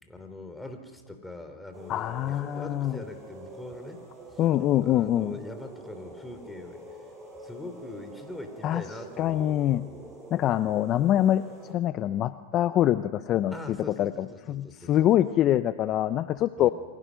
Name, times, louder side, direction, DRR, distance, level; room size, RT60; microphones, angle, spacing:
voice 1, 0.0-4.0 4.3-4.4 4.8-6.8 7.4-10.1 13.5-15.2 16.6-16.7, left 2 dB, 5° left, 7 dB, 3.4 m, -42 dB
sound 1, 1.7-11.7, right 2 dB, 10° right, 6.5 m, -46 dB
voice 2, 1.9-3.0 4.4-5.3 8.6-8.8 9.2-9.9 10.3-16.7, left 12 dB, 40° left, 12 dB, 0.8 m, -25 dB
27.5 x 24.5 x 6.4 m, 1.4 s
hypercardioid pair, 120°, 0 cm